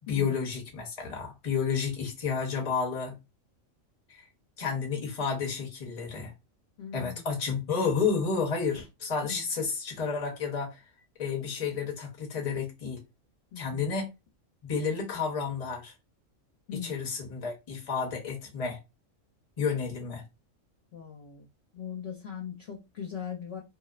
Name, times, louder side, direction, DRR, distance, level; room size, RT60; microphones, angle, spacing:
voice 1, 0.1-3.2 4.1-4.2 4.6-6.3 6.9-10.8 11.2-13.0 13.6-14.1 14.6-15.9 16.8-18.8 19.6-20.2, left 5 dB, 35° left, 0.7 m, -31 dB
voice 2, 6.8-7.3 9.2-9.5 13.5-13.9 16.7-17.1 20.9-21.5 21.7-23.6, left 8 dB, 60° left, 0.8 m, -40 dB
2.6 x 2.0 x 2.3 m
omnidirectional pair, 1.4 m